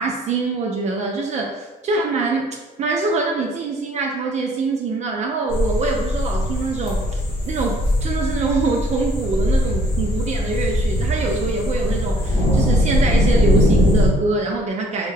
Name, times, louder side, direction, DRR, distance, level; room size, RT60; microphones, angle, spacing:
voice 1, 0.0-2.5 2.8-15.1, right 3 dB, 45° right, 0 dB, 0.4 m, -24 dB
sound 1, 5.5-14.1, left 1 dB, 75° left, 1.3 m, -20 dB
4.1 x 2.2 x 3.2 m, 1.2 s
cardioid pair, 110°, 17 cm